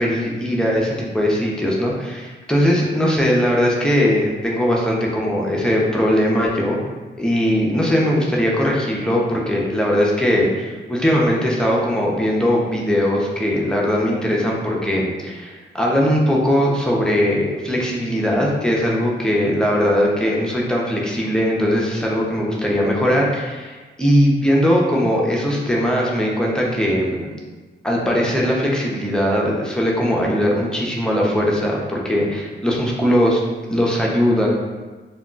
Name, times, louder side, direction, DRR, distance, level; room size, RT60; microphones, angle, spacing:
voice 1, 0.0-6.8 7.2-27.3 27.8-33.4 33.7-34.5, equal, 5° left, -3 dB, 0.5 m, -19 dB
2.2 x 2.1 x 3.7 m, 1.3 s
cardioid pair, 90°, 19 cm